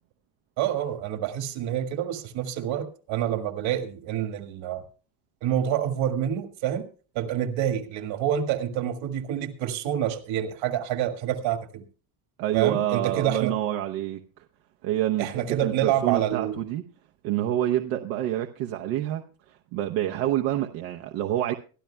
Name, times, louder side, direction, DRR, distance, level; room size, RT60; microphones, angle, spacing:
voice 1, 0.6-4.8 5.4-6.9 7.2-11.8 12.5-13.5 15.2-16.6, right 10 dB, 65° right, 1.9 m, -27 dB
voice 2, 12.4-14.2 14.8-16.8 17.2-21.5, right 13 dB, 85° right, 1.0 m, -27 dB
23.0 x 12.0 x 2.2 m
cardioid pair, 130°, 49 cm